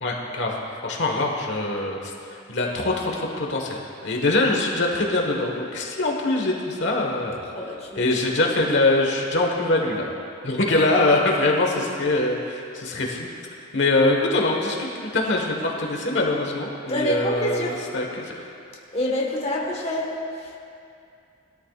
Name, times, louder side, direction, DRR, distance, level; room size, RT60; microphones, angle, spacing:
voice 1, 0.0-2.1 2.5-7.4 8.0-10.1 10.4-13.3 13.7-18.4, left 2 dB, 60° left, 0 dB, 1.4 m, -23 dB
voice 2, 7.5-8.0 10.7-11.1 16.9-17.8 18.9-20.5, left 1 dB, 30° left, -3 dB, 1.4 m, -27 dB
20.5 x 13.5 x 2.4 m, 2.5 s
head